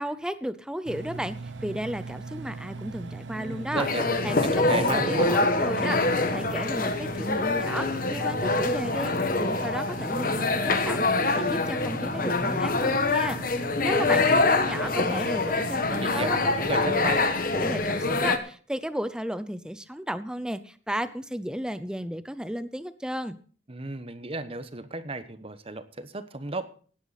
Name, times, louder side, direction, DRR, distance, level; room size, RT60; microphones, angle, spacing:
voice 1, 0.0-3.9 4.2-9.1 9.4-11.0 11.3-17.1 17.5-23.4, equal, 5° right, 12 dB, 0.7 m, -34 dB
Engine, 0.9-17.3, right 3 dB, 80° right, 0.9 m, -40 dB
voice 2, 3.2-5.3 14.1-15.6 16.0-17.3 23.7-26.7, right 3 dB, 30° right, 12 dB, 1.0 m, -35 dB
sound 1, 3.7-18.4, left 3 dB, 50° left, 1.4 m, -25 dB
16.5 x 10.5 x 4.2 m, 0.43 s
head